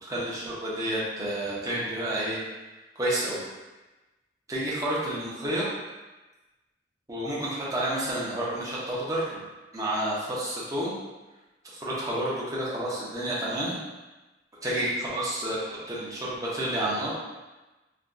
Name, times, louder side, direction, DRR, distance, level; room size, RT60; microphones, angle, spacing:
voice 1, 0.0-2.4 3.0-3.4 4.5-5.7 7.1-9.5 9.7-10.9 11.6-13.8 14.6-17.2, right 1 dB, 20° right, -7 dB, 0.6 m, -30 dB
3.3 x 2.2 x 2.5 m, 1.1 s
head